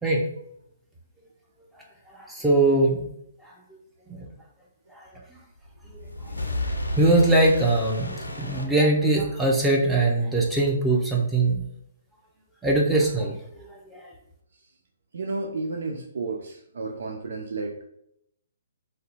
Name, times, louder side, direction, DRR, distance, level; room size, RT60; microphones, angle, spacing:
voice 1, 2.1-3.1 3.4-3.5 4.1-4.3 4.9-5.1 5.9-6.0 7.0-11.6 12.6-14.1, right 2 dB, 5° right, -3 dB, 0.7 m, -22 dB
sound 1, 5.6-9.4, left 1 dB, 85° left, 0.5 m, -32 dB
voice 2, 15.1-17.8, right 3 dB, 65° right, 2 dB, 0.4 m, -32 dB
2.7 x 2.1 x 4.0 m, 0.74 s
figure-of-eight pair, 130°, 0 cm